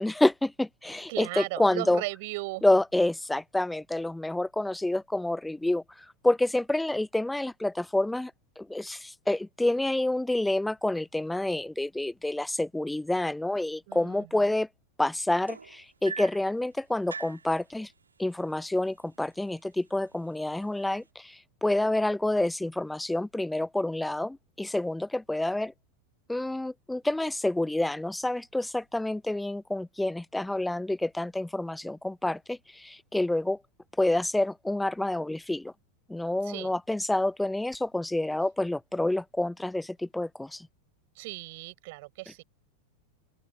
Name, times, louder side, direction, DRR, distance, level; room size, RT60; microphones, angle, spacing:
voice 1, 0.0-2.0 2.6-8.3 8.6-14.7 15.0-17.9 18.2-25.7 26.3-33.6 34.0-35.7 36.1-40.7, left 1 dB, 5° left, 0.3 m, -28 dB
voice 2, 1.1-2.7 13.9-14.6 36.4-36.7 41.1-42.4, right 23 dB, 50° right, 6.3 m, -37 dB
sound 1, 15.5-16.5 17.1-17.5 18.5-18.6 19.0-19.4 20.1-20.2, right 5 dB, 75° right, 3.4 m, -40 dB
open air
figure-of-eight pair, 90°, 0 cm